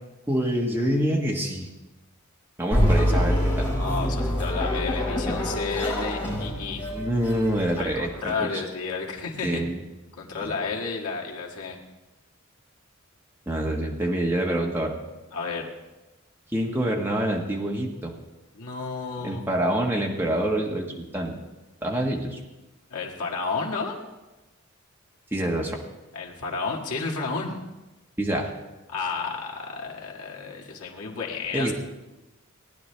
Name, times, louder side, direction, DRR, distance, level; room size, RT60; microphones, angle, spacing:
voice 1, 0.3-1.7 2.6-3.7 6.9-8.6 9.4-9.8 10.4-10.5 13.5-14.9 16.5-18.1 19.2-21.3 21.8-22.4 25.3-25.8 28.2-28.5 31.5-31.7, right 1 dB, 10° right, -1 dB, 1.4 m, -26 dB
sound 1, 2.7-8.2, equal, 25° left, 5.2 m, -25 dB
voice 2, 3.8-6.8 7.8-9.6 10.2-11.8 14.5-14.6 15.3-15.7 18.5-19.4 22.9-24.0 26.1-27.6 28.9-31.7, left 4 dB, 90° left, -2 dB, 1.8 m, -31 dB
19.0 x 10.5 x 3.3 m, 1.1 s
head